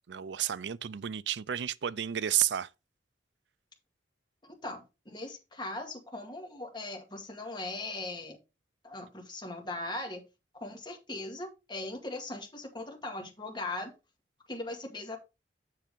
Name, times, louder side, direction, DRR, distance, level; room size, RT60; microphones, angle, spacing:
voice 1, 0.1-2.7, right 11 dB, 65° right, 0.4 m, -31 dB
voice 2, 4.4-8.4 8.8-10.2 10.5-13.9 14.5-15.2, left 2 dB, 25° left, 2.1 m, -39 dB
7.7 x 6.6 x 3.5 m
head